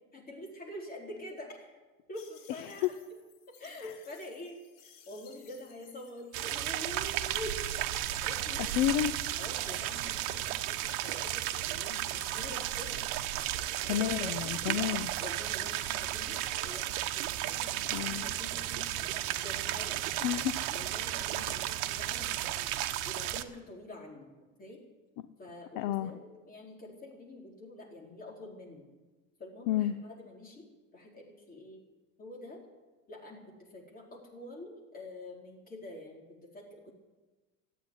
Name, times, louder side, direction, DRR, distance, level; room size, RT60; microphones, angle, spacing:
voice 1, 0.1-1.7 2.1-2.9 3.6-8.6 9.4-13.0 13.8-14.5 15.2-16.9 17.1-20.0 20.7-22.7 23.1-24.3 24.6-24.8 25.4-28.9 29.4-30.6 30.9-31.8 32.2-32.6 33.1-36.9, left 1 dB, 20° left, -2 dB, 4.6 m, -46 dB
sound 1, 2.1-9.9 10.2-12.9, left 7 dB, 70° left, 4.6 m, -58 dB
sound 2, 6.3-23.4, right 14 dB, 70° right, 1.1 m, -34 dB
voice 2, 8.6-9.2 13.9-15.1 17.9-18.2 20.2-20.5 21.3-21.5 25.2-25.3 25.8-26.1 29.7-29.9, left 12 dB, 50° left, 11 dB, 0.8 m, -31 dB
15.0 x 9.1 x 9.8 m, 1.2 s
supercardioid pair, 140°, 42 cm